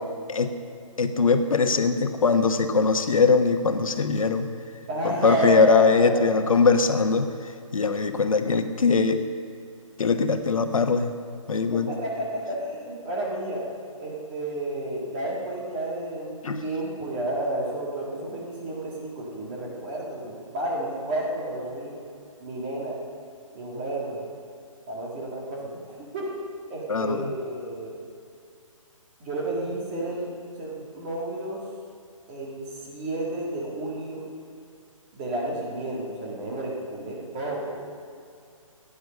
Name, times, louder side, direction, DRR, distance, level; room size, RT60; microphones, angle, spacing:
voice 1, 1.0-4.5 5.0-9.2 10.0-11.1 11.5-11.9 16.4-16.6 26.9-27.2, left 4 dB, 75° left, 7 dB, 1.2 m, -21 dB
voice 2, 4.9-6.5 11.7-13.6 14.0-21.9 22.4-23.0 23.5-24.3 24.9-26.4 26.7-28.0 29.2-30.3 30.6-31.6 32.3-34.2 35.1-37.8, right 1 dB, 15° right, -4 dB, 1.9 m, -31 dB
16.0 x 9.8 x 6.5 m, 2.4 s
hypercardioid pair, 180°, 17 cm